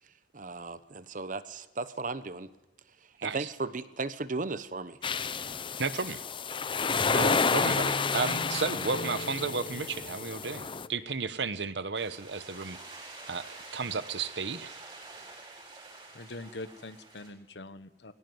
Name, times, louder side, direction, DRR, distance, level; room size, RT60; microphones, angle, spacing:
voice 1, 0.3-2.5 3.2-5.0, right 3 dB, 50° right, 1.1 m, -36 dB
sound 1, 5.0-10.9, left 5 dB, 30° left, 0.7 m, -30 dB
voice 2, 5.8-6.2 7.1-12.8 13.3-14.8, right 4 dB, 85° right, 1.1 m, -33 dB
sound 2, 6.9-11.8, left 1 dB, 45° left, 1.1 m, -42 dB
sound 3, 11.9-17.3, right 3 dB, 30° right, 7.6 m, -48 dB
voice 3, 16.1-18.1, left 2 dB, 75° left, 1.2 m, -43 dB
22.5 x 18.0 x 9.5 m
head